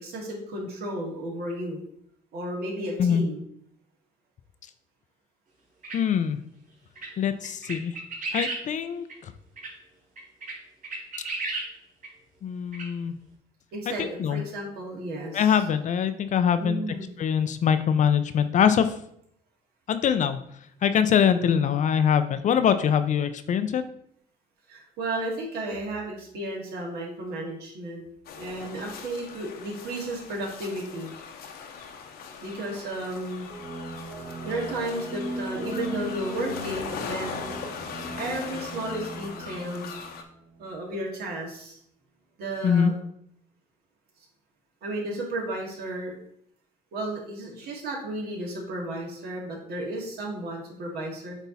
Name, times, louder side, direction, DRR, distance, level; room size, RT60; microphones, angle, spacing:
voice 1, 0.0-1.8 2.3-3.4 13.7-15.6 16.6-17.1 21.2-21.6 24.7-28.0 28.4-31.1 32.4-33.5 34.4-37.7 38.2-39.9 40.6-41.8 42.4-42.9 44.8-46.2 46.9-51.4, right 1 dB, 70° right, -2 dB, 2.4 m, -33 dB
sound 1, 5.8-6.0 7.0-7.1 7.4-8.6 9.1-9.2 9.6-9.7 10.2-10.5 10.8-11.7 12.0-12.1 12.7-12.9, right 3 dB, 50° right, 2.9 m, -32 dB
voice 2, 5.9-6.4 7.2-7.9 8.3-9.3 12.4-13.1 14.0-14.4 15.3-16.8 17.2-18.9 19.9-20.4 20.8-23.8 42.6-42.9, left 8 dB, 45° left, 11 dB, 0.6 m, -23 dB
sound 2, 28.2-40.2, left 6 dB, 65° left, 1.0 m, -40 dB
sound 3, 33.5-40.9, right 1 dB, 30° right, 1.4 m, -38 dB
8.1 x 3.5 x 4.1 m, 0.70 s
cardioid pair, 110°, 17 cm